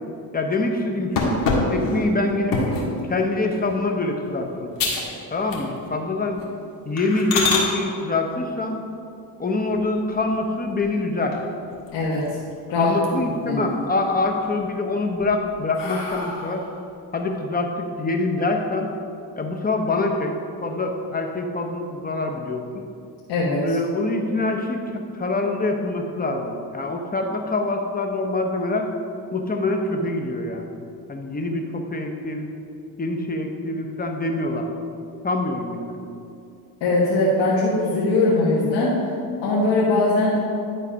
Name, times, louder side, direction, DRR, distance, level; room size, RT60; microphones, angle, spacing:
voice 1, 0.3-1.4 1.7-2.7 3.1-4.7 5.3-6.5 6.8-8.8 9.4-11.4 12.7-16.6 17.1-18.9 19.4-22.8 23.6-28.9 29.3-30.7 31.1-32.5 33.0-34.7 35.2-36.0, left 2 dB, 20° left, 3 dB, 0.8 m, -25 dB
sound 1, 1.2-2.9 3.5-3.8 4.2-4.3 4.8-5.1 5.4-6.0 6.3-6.5 7.0-7.7 9.7-10.3 10.8-10.9 11.3-11.4 11.7-12.5 12.8-13.4 13.8-14.5 15.0-16.7, left 3 dB, 50° left, 1.8 m, -26 dB
voice 2, 11.9-12.3 12.7-12.9 13.5-13.6 23.3-23.7 36.8-38.9 39.4-40.4, left 2 dB, 75° left, -8 dB, 1.7 m, -20 dB
11.0 x 4.1 x 5.1 m, 2.5 s
cardioid pair, 105°, 43 cm